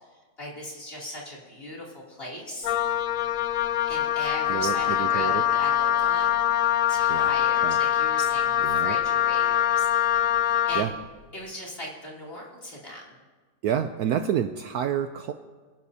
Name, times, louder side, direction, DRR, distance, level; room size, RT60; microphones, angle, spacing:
voice 1, 0.4-2.7 3.9-6.4 6.9-10.3 10.7-10.9 11.3-13.1, left 1 dB, 30° left, -5 dB, 3.2 m, -38 dB
Wind instrument woodwind instrument, 2.6-10.9, left 11 dB, 65° left, 0.9 m, -24 dB
voice 2, 4.5-5.4 7.1-7.3 7.6-7.8 8.6-9.0 10.4-10.9 13.6-15.3, right 9 dB, 70° right, 8 dB, 1.0 m, -29 dB
27.0 x 11.5 x 2.8 m, 1.4 s
omnidirectional pair, 1.9 m